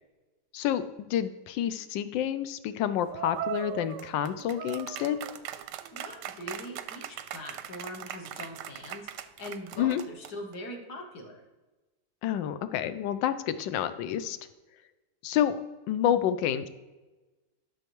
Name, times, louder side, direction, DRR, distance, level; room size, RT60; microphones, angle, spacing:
voice 1, 1.1-5.3 9.8-10.0 12.2-14.4 15.2-15.6 15.9-16.7, left 10 dB, 80° left, 12 dB, 1.3 m, -28 dB
sound 1, 3.1-10.5, right 11 dB, 75° right, 1.1 m, -39 dB
voice 2, 5.9-11.4, left 1 dB, 55° left, 2 dB, 1.8 m, -42 dB
12.0 x 6.5 x 3.0 m, 1.1 s
omnidirectional pair, 2.1 m